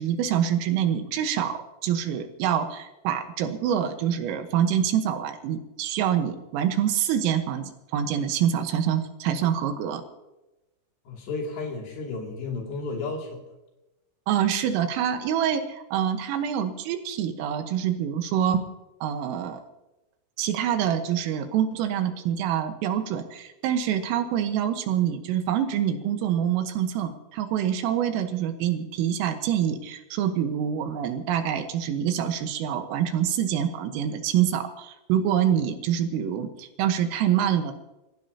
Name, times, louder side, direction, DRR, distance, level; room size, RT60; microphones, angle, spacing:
voice 1, 0.0-1.5 1.8-10.0 14.3-18.6 19.0-19.6 20.4-37.7, right 9 dB, 85° right, 7 dB, 3.9 m, -26 dB
voice 2, 11.1-13.4, left 3 dB, 60° left, -1 dB, 4.7 m, -33 dB
27.5 x 15.5 x 2.9 m, 1.0 s
omnidirectional pair, 5.8 m